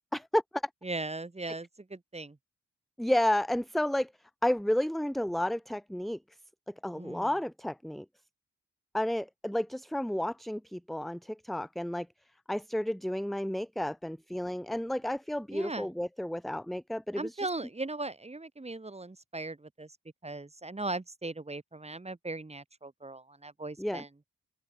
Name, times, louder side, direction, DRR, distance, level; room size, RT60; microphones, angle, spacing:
voice 1, 0.1-0.6 3.0-4.1 4.4-6.2 6.8-8.0 8.9-12.1 12.5-17.5 23.8-24.0, left 1 dB, ahead, 1.0 m, -31 dB
voice 2, 0.8-2.4 6.9-7.3 15.5-15.9 17.2-19.9 20.2-24.1, right 2 dB, 20° right, 5.3 m, -38 dB
open air
wide cardioid pair, 115°, 30 cm